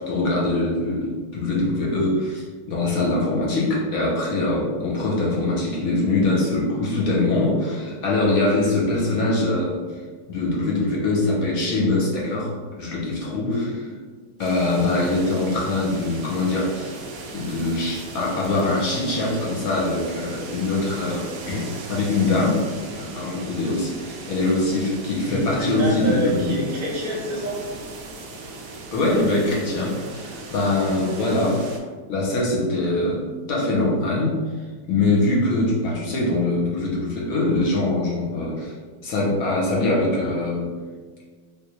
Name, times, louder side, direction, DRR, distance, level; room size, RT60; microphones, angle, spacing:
voice 1, 0.0-10.0 10.3-13.7 14.4-17.0 17.3-22.6 22.9-26.6 28.9-31.6 32.1-33.2 33.5-34.4 34.9-38.7 39.0-40.7, left 2 dB, 65° left, -4 dB, 0.9 m, -23 dB
voice 2, 13.4-13.8 25.3-27.6, right 1 dB, 60° right, -4 dB, 1.1 m, -27 dB
sound 1, 14.4-31.8, right 3 dB, 80° right, 0.7 m, -38 dB
3.6 x 2.6 x 2.7 m, 1.5 s
omnidirectional pair, 2.0 m